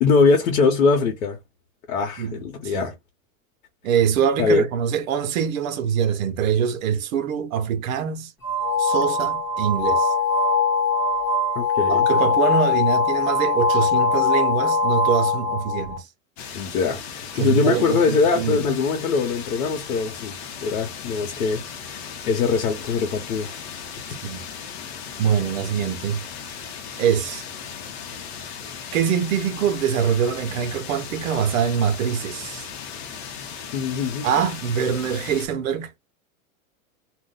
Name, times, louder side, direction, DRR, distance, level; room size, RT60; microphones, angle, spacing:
voice 1, 0.0-1.4 1.9-2.9 4.4-4.7 11.5-12.1 16.5-20.3 20.6-23.5 33.7-34.3, left 4 dB, 85° left, 1.0 m, -22 dB
voice 2, 2.2-2.9 3.8-8.3 8.8-10.1 11.9-16.1 17.3-18.7 24.2-24.4 25.2-26.2 27.0-27.4 28.9-32.7 34.2-36.0, right 8 dB, 70° right, 0.9 m, -24 dB
sound 1, 8.4-16.0, left 4 dB, 10° left, 0.4 m, -21 dB
sound 2, 16.4-35.5, left 7 dB, 50° left, 0.8 m, -37 dB
2.5 x 2.2 x 3.8 m
supercardioid pair, 170°, 41 cm